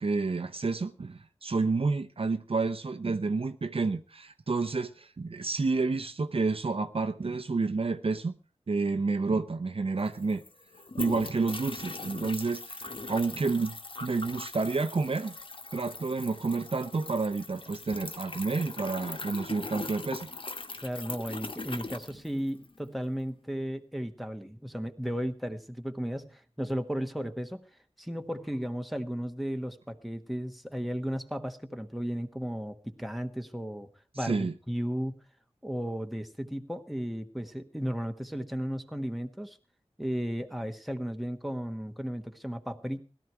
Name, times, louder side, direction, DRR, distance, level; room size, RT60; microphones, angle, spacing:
voice 1, 0.0-8.3 8.7-10.4 11.0-15.4 15.7-20.3 34.2-34.5, right 3 dB, 55° right, 0.8 m, -30 dB
sound 1, 9.7-9.8 10.0-22.8, left 3 dB, 50° left, 1.1 m, -41 dB
voice 2, 20.8-27.6 28.0-33.9 34.1-35.2 35.6-39.6 40.0-43.0, equal, ahead, 1.3 m, -35 dB
17.0 x 12.5 x 4.5 m
wide cardioid pair, 60°, 11 cm